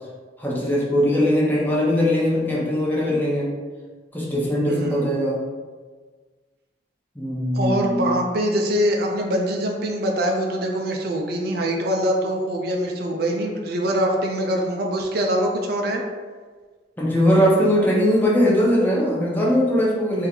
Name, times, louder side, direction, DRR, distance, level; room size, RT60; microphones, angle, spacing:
voice 1, 0.4-3.5 4.1-5.4 7.1-8.1 17.0-20.3, equal, 10° left, -6 dB, 1.0 m, -20 dB
voice 2, 4.7-5.1 7.5-16.0, equal, 60° right, 1 dB, 0.5 m, -23 dB
3.7 x 2.7 x 4.4 m, 1.4 s
head